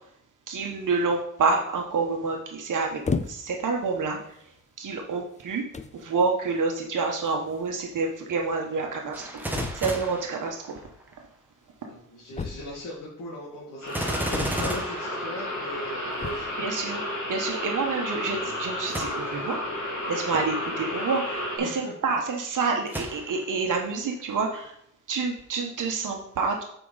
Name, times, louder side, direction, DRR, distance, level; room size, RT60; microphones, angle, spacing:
voice 1, 0.5-4.4 4.8-5.6 5.9-10.8 16.6-19.6 20.0-24.7 25.1-26.6, right 4 dB, 75° right, 1 dB, 1.2 m, -28 dB
sound 1, 3.0-3.7 4.4-4.6 5.4-5.5 5.7-6.0 7.3-7.4 7.6-7.7 7.9-8.0 9.5-10.1 12.3-13.0 14.3-14.9 16.1-16.6, left 4 dB, 25° left, 0.4 m, -33 dB
Gunshot gunfire, 9.1-11.1 13.9-16.0 18.9-19.5 20.2-20.3 22.9-23.7 24.2-24.3, right 1 dB, 5° right, 0.9 m, -33 dB
voice 2, 11.9-16.5 21.6-21.9, left 1 dB, 80° left, -5 dB, 2.0 m, -38 dB
sound 2, 13.8-21.6, left 1 dB, 60° left, 2.4 m, -32 dB
8.3 x 5.2 x 4.0 m, 0.72 s
wide cardioid pair, 150°, 32 cm